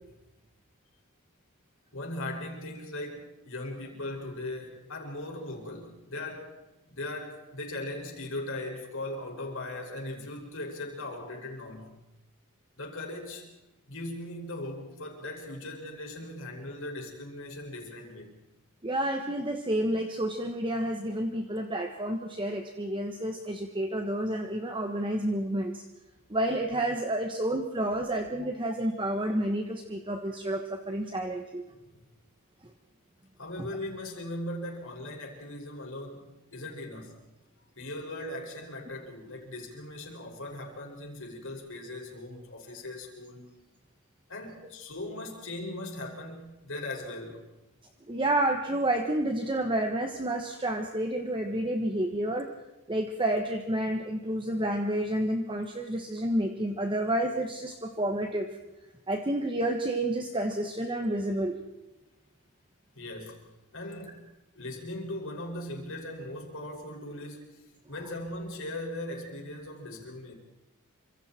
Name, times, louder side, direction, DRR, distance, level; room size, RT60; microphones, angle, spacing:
voice 1, 1.9-6.5 6.8-12.0 12.8-13.5 13.9-18.4 27.8-28.1 31.9-32.0 33.4-37.2 37.8-43.5 44.3-47.4 62.9-63.4 63.7-64.3 64.5-70.3, left 1 dB, 60° left, 1 dB, 6.0 m, -39 dB
voice 2, 18.8-25.8 26.3-31.6 48.1-52.5 52.9-58.6 59.1-61.6, right 1 dB, 20° right, 4 dB, 1.5 m, -30 dB
28.5 x 26.0 x 4.5 m, 0.98 s
head